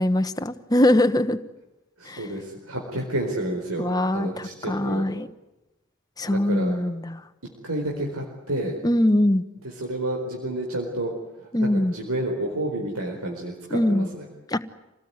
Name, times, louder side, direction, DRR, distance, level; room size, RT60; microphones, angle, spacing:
voice 1, 0.0-1.4 2.1-2.3 3.8-5.3 6.2-7.2 8.8-9.4 11.5-11.9 13.7-14.1 14.5-14.6, left 1 dB, 15° left, 9 dB, 1.0 m, -22 dB
voice 2, 2.0-5.1 6.3-6.7 7.6-8.7 9.8-11.1 11.6-14.3, right 1 dB, 80° right, 0 dB, 4.5 m, -30 dB
27.0 x 18.5 x 9.6 m, 1.0 s
head